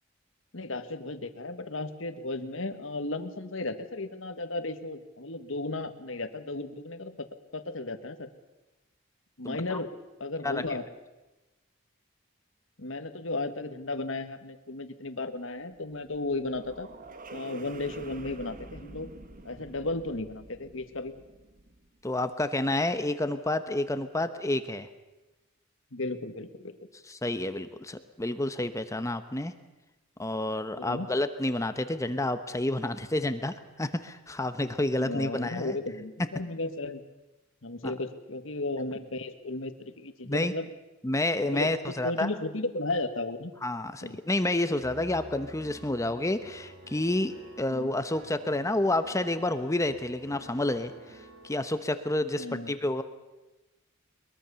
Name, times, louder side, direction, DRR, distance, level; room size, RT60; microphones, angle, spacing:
voice 1, 0.5-7.3 7.5-8.3 9.4-9.9 10.2-10.9 12.8-16.9 17.3-19.1 19.5-21.1 25.9-26.8 30.8-31.1 35.0-37.0 37.6-40.7 41.4-43.5 44.0-44.2 47.7-47.9 52.4-52.7, left 2 dB, 70° left, 9 dB, 1.7 m, -34 dB
voice 2, 9.4-9.8 10.4-10.6 22.0-24.9 27.1-29.5 30.2-35.7 37.8-37.9 40.2-40.5 41.0-42.3 43.6-53.0, left 1 dB, 15° left, 10 dB, 1.0 m, -29 dB
sound 1, 15.6-22.0, right 2 dB, 45° right, 1.5 m, -48 dB
Piano, 44.8-51.6, right 2 dB, 65° right, 7.2 m, -50 dB
22.5 x 22.5 x 7.0 m, 1.1 s
head